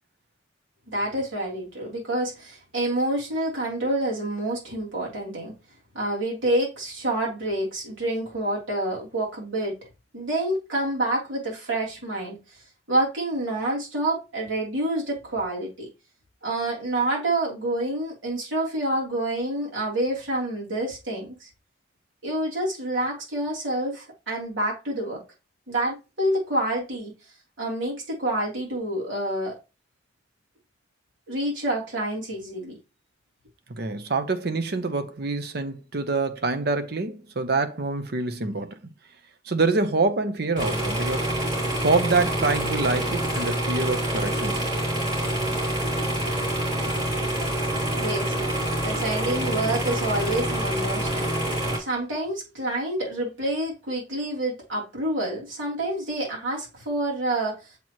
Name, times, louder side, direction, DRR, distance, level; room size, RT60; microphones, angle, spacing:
voice 1, 0.9-5.5 5.9-9.8 10.1-12.4 12.9-15.9 16.4-21.5 22.2-25.2 25.7-27.1 27.6-29.6 31.3-32.8 48.0-48.3 48.8-51.3 51.8-57.6, right 1 dB, 85° right, 3.2 m, -28 dB
voice 2, 33.7-38.8 39.4-41.3 41.7-44.7, right 3 dB, 55° right, 0.8 m, -26 dB
sound 1, 40.6-51.8, right 1 dB, 25° right, 3.1 m, -26 dB
7.0 x 4.6 x 3.0 m
head